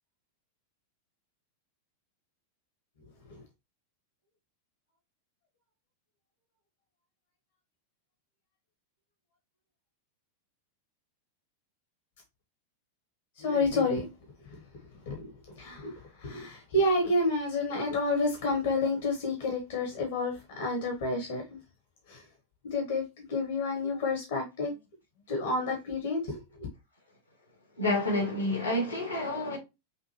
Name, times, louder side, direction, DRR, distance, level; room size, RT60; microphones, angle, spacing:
voice 1, 13.4-14.0 15.1-15.3 15.6-15.9 16.2-21.6 22.1-22.2 22.6-24.7 25.3-26.4, left 2 dB, 55° left, 1.2 m, -29 dB
voice 2, 27.8-29.6, left 1 dB, 85° left, 1.9 m, -29 dB
5.5 x 2.7 x 2.9 m
figure-of-eight pair, 90°, 0 cm